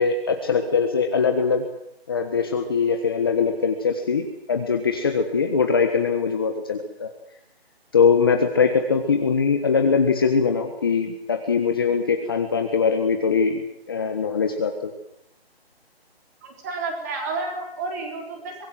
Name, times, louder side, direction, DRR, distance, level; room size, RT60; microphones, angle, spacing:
voice 1, 0.0-1.6 2.1-7.1 7.9-14.9, left 5 dB, 20° left, 5 dB, 1.4 m, -22 dB
voice 2, 16.4-18.7, right 3 dB, 15° right, 2 dB, 4.0 m, -31 dB
24.5 x 21.0 x 7.6 m, 0.79 s
hypercardioid pair, 175°, 31 cm